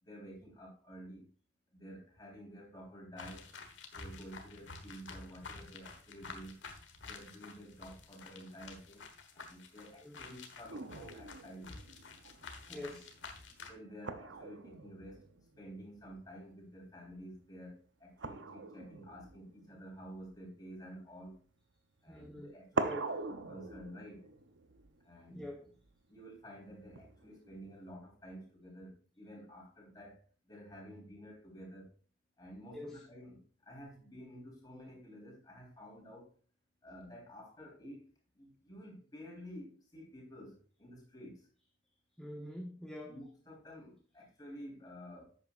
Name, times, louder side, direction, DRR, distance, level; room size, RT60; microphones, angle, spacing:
voice 1, 0.0-1.3 1.7-3.5 3.9-6.6 7.0-9.1 9.3-11.7 12.7-13.0 13.6-15.3 15.6-21.4 22.0-22.9 23.3-24.3 25.0-25.4 26.1-32.0 32.4-36.3 36.8-38.0 38.3-41.5 43.1-45.4, equal, 20° left, -2 dB, 3.8 m, -51 dB
sound 1, 3.2-13.7, left 4 dB, 75° left, 1.4 m, -50 dB
sound 2, 10.7-16.6 16.8-17.3 18.2-21.4 22.3-22.4 22.7-26.0 26.9-27.9, right 3 dB, 75° right, 0.7 m, -43 dB
voice 2, 12.7-13.1 22.1-23.1 25.3-25.7 32.7-33.0 42.2-43.2, left 1 dB, 5° left, 0 dB, 0.9 m, -45 dB
11.0 x 8.4 x 2.5 m, 0.39 s
head